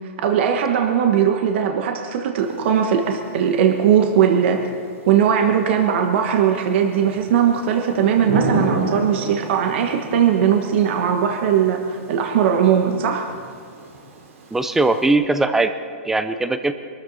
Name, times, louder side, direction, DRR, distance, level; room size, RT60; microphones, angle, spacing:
voice 1, 0.2-4.6 5.1-13.3, right 8 dB, 50° right, 4 dB, 1.4 m, -19 dB
Thunder / Rain, 2.4-15.1, right 3 dB, 75° right, 3.5 m, -32 dB
voice 2, 14.5-15.7 16.0-16.7, right 2 dB, 5° right, 10 dB, 0.6 m, -19 dB
24.0 x 13.5 x 4.1 m, 2.2 s
hypercardioid pair, 155°, 8 cm